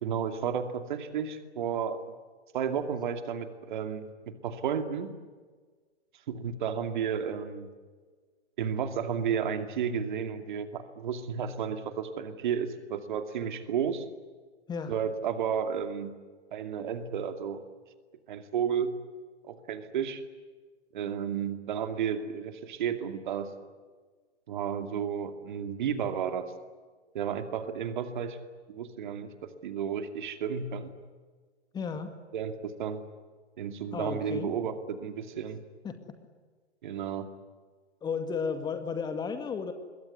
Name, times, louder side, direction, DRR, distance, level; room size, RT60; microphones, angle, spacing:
voice 1, 0.0-2.0 2.5-5.1 6.3-7.7 8.6-14.0 14.9-16.1 16.5-17.6 18.3-19.0 19.4-20.2 20.9-23.5 24.5-26.5 27.1-28.4 28.7-30.9 32.3-33.0 33.6-35.6 36.8-37.3, right 7 dB, 45° right, 8 dB, 2.6 m, -32 dB
voice 2, 31.7-32.1 33.9-34.5 35.8-36.0 38.0-39.7, left 5 dB, 10° left, 8 dB, 2.1 m, -33 dB
26.5 x 22.0 x 9.9 m, 1.4 s
figure-of-eight pair, 115°, 33 cm